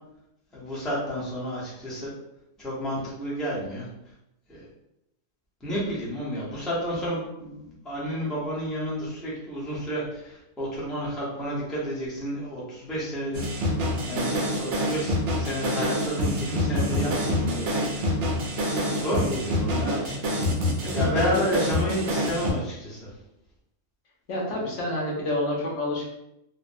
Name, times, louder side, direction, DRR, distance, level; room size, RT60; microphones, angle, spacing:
voice 1, 0.5-2.1 2.6-3.9 4.5-4.7 5.6-13.5 14.1-18.2 18.5-20.6 20.9-23.1, equal, ahead, -8 dB, 0.7 m, -31 dB
sound 1, 13.3-22.5, equal, 65° right, 0.9 m, -26 dB
voice 2, 20.8-21.4 24.3-26.1, left 1 dB, 65° left, -3 dB, 1.0 m, -29 dB
3.2 x 2.0 x 2.5 m, 0.84 s
omnidirectional pair, 1.4 m